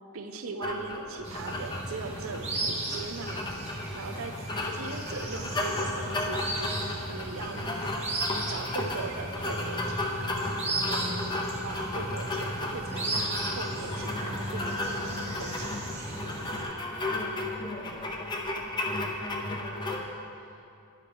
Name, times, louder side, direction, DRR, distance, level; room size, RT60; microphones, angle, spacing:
voice 1, 0.1-3.5 3.9-4.4 4.7-7.9 8.5-10.3 10.7-15.7, right 3 dB, 85° right, 7 dB, 0.6 m, -40 dB
sound 1, 0.6-20.0, left 2 dB, 20° left, 0.7 m, -34 dB
sound 2, 1.2-16.6, right 1 dB, 30° right, 1.2 m, -36 dB
voice 2, 17.0-18.2 19.4-20.6, equal, 75° left, -6 dB, 2.2 m, -45 dB
10.0 x 8.6 x 3.5 m, 2.6 s
head